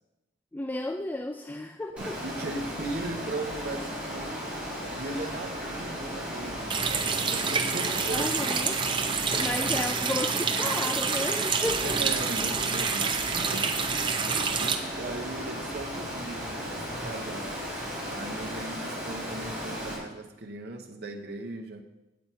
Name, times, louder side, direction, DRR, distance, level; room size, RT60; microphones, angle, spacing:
voice 1, 0.5-2.2 8.1-8.8 9.3-12.0, left 1 dB, 10° left, 6 dB, 0.3 m, -33 dB
voice 2, 1.9-8.5 9.3-9.5 11.8-14.2 14.6-17.5 18.1-21.8, right 2 dB, 60° right, 1 dB, 0.8 m, -38 dB
Water, 2.0-20.0, equal, 5° right, 3.5 m, -36 dB
Water tap faucet, 6.7-14.7, right 5 dB, 25° right, 0.7 m, -28 dB
8.6 x 7.6 x 5.5 m, 0.99 s
head